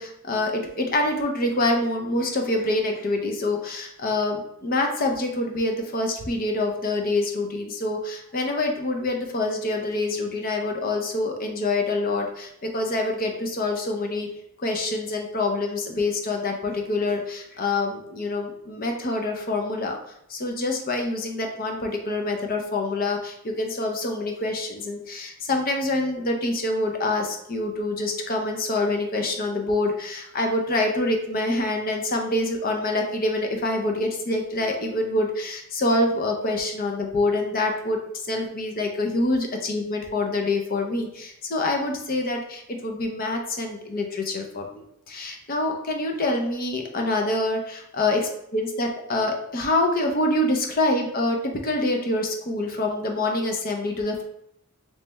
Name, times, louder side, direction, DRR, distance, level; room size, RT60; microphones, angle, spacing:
voice 1, 0.0-14.3 14.6-20.0 20.3-38.0 38.2-48.2 48.5-54.2, left 2 dB, 45° left, 3 dB, 0.6 m, -26 dB
3.2 x 3.0 x 3.3 m, 0.75 s
head